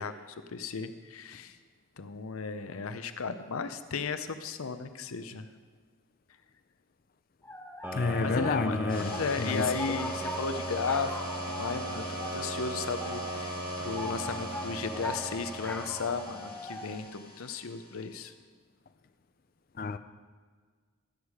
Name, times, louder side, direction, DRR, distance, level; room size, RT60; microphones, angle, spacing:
voice 1, 0.0-1.6 2.0-5.5 8.1-11.1 11.5-18.3, left 5 dB, 85° left, 0.6 m, -35 dB
sound 1, 7.4-17.0, left 1 dB, 10° left, 0.7 m, -42 dB
sound 2, 7.8-16.8, right 2 dB, 10° right, 1.1 m, -38 dB
voice 2, 7.9-10.0 19.8-20.0, left 3 dB, 40° left, 0.4 m, -30 dB
sound 3, 8.9-18.2, left 3 dB, 65° left, 3.5 m, -45 dB
15.5 x 6.5 x 4.9 m
head